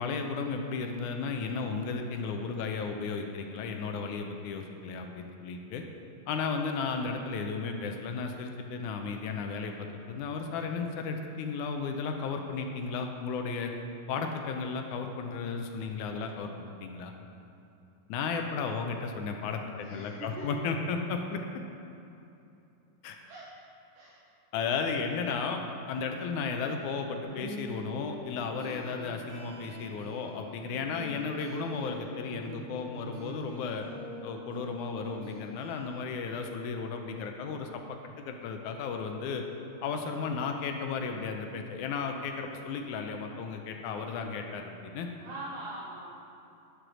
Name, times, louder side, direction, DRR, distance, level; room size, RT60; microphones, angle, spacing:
voice 1, 0.0-5.8 6.3-13.7 14.1-17.1 18.1-21.4 23.0-23.2 24.5-25.6 25.9-33.9 34.2-39.4 39.8-45.1, left 5 dB, 75° left, 4 dB, 1.9 m, -34 dB
voice 2, 19.8-20.5 23.3-23.5 23.9-24.3 45.2-46.1, right 2 dB, 70° right, -7 dB, 2.8 m, -42 dB
sound 1, 27.2-35.9, equal, 50° right, 3.9 m, -44 dB
10.0 x 8.0 x 6.2 m, 2.8 s
omnidirectional pair, 4.0 m